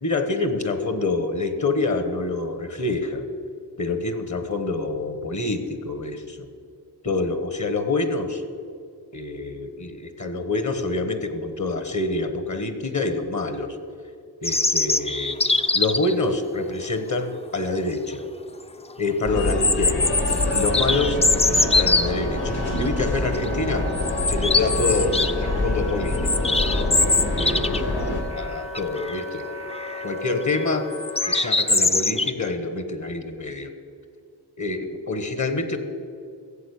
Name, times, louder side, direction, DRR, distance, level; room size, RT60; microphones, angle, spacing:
voice 1, 0.0-3.2 3.8-6.5 7.0-8.4 9.1-13.8 14.4-15.4 15.7-18.2 19.0-20.1 20.5-23.9 24.3-26.8 27.3-27.9 28.3-29.5 30.0-30.9 31.3-33.7 34.6-35.8, left 3 dB, 40° left, 9 dB, 1.3 m, -26 dB
sound 1, 14.4-16.1 17.7-17.8 18.2-18.3 19.4-22.1 22.8-23.0 23.3-23.5 23.9-25.3 25.7-27.9 28.2-28.3 28.7-29.2 29.7-30.1 30.9-32.3, left 3 dB, 15° left, 0.5 m, -22 dB
sound 2, 19.2-28.2, left 1 dB, 60° left, 2.3 m, -26 dB
Wind instrument woodwind instrument, 20.0-31.4, left 4 dB, 80° left, 1.6 m, -36 dB
15.0 x 7.6 x 8.3 m, 2.2 s
wide cardioid pair, 95°, 43 cm